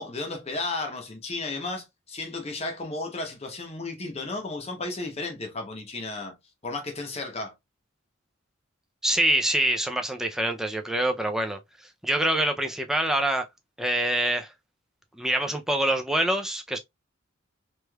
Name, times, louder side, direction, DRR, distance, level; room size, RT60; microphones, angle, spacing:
voice 1, 0.0-6.4 6.6-7.5, left 3 dB, 30° left, 0.8 m, -33 dB
voice 2, 9.0-11.6 12.0-13.5 13.8-14.5 15.2-16.8, right 1 dB, ahead, 0.3 m, -25 dB
3.2 x 3.0 x 2.2 m
head